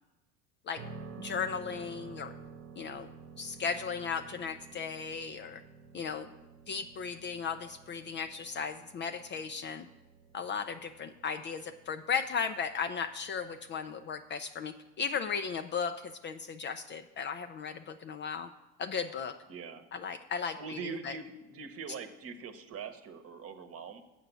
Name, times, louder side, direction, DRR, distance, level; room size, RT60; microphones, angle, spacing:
sound 1, 0.8-16.6, right 5 dB, 90° right, 1.1 m, -52 dB
voice 1, 1.2-2.3 2.8-3.1 3.4-5.6 5.9-6.3 6.7-9.9 10.3-18.5 18.8-19.3 19.9-20.8 21.0-21.1, left 6 dB, 30° left, 9 dB, 0.4 m, -36 dB
voice 2, 19.5-19.8 20.6-24.0, right 5 dB, 40° right, 7 dB, 1.0 m, -43 dB
7.7 x 5.9 x 6.7 m, 1.1 s
hypercardioid pair, 85°, 37 cm